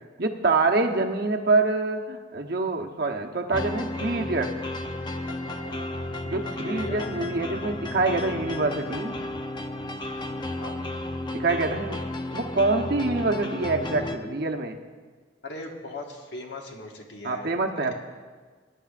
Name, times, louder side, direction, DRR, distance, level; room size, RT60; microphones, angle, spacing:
voice 1, 0.2-4.5 6.3-9.1 11.3-12.0 12.3-14.8 17.2-18.0, right 3 dB, 60° right, 3 dB, 1.0 m, -25 dB
sound 1, 3.5-14.2, left 2 dB, 25° left, 0.6 m, -33 dB
voice 2, 6.4-7.0 10.6-10.8 15.4-17.5 17.8-18.0, left 2 dB, 70° left, 1 dB, 1.6 m, -38 dB
21.5 x 10.0 x 2.5 m, 1.5 s
head